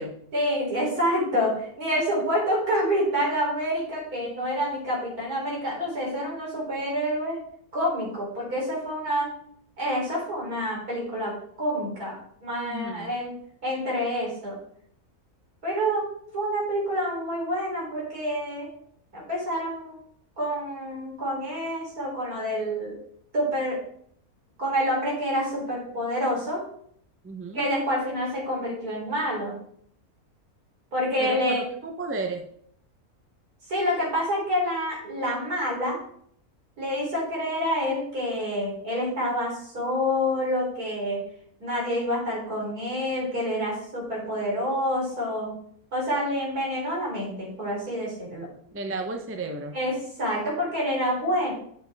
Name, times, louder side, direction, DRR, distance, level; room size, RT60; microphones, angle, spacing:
voice 1, 0.3-7.4 7.7-9.3 9.8-13.3 13.6-14.6 15.6-16.1 16.3-18.7 19.1-20.0 20.4-22.9 23.3-23.8 24.6-26.6 27.5-29.6 30.9-31.6 33.7-36.0 36.8-41.2 41.6-45.5 45.9-48.5 49.7-51.5, equal, 75° right, -4 dB, 4.2 m, -27 dB
voice 2, 12.7-13.1 27.2-27.7 31.2-32.4 48.7-49.8, right 2 dB, 15° right, 4 dB, 0.6 m, -33 dB
8.5 x 6.8 x 3.5 m, 0.64 s
omnidirectional pair, 1.6 m